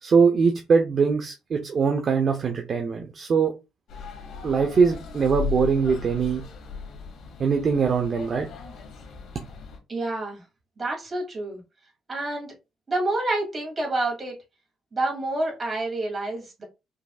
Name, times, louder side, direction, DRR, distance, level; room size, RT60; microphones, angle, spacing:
voice 1, 0.0-3.5 4.4-6.4 7.4-8.5, right 5 dB, 45° right, 0.7 m, -22 dB
sound 1, 3.9-9.8, left 5 dB, 75° left, 1.6 m, -36 dB
voice 2, 9.9-10.4 10.8-11.6 12.1-12.5 12.9-14.4 14.9-16.6, right 2 dB, 30° right, 2.5 m, -28 dB
5.4 x 3.3 x 2.4 m
cardioid pair, 115°, 0 cm